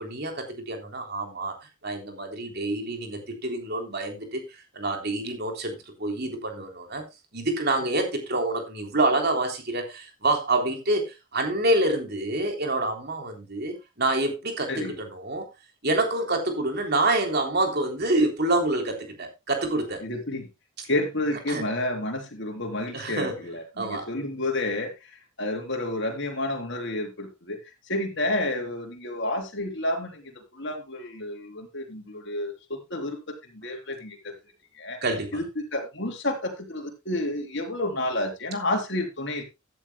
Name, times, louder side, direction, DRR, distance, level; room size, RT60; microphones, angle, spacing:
voice 1, 0.0-1.6 1.8-7.0 7.3-15.5 15.8-20.1 21.5-21.6 22.9-23.5 23.8-24.1 35.0-35.4, right 2 dB, 45° right, 3.5 m, -27 dB
voice 2, 20.0-20.5 20.9-24.9 25.4-27.6 27.9-33.2 33.5-34.3 34.8-35.0 35.3-35.4 35.7-39.4, left 1 dB, 55° left, 3.7 m, -30 dB
15.0 x 11.0 x 2.2 m
head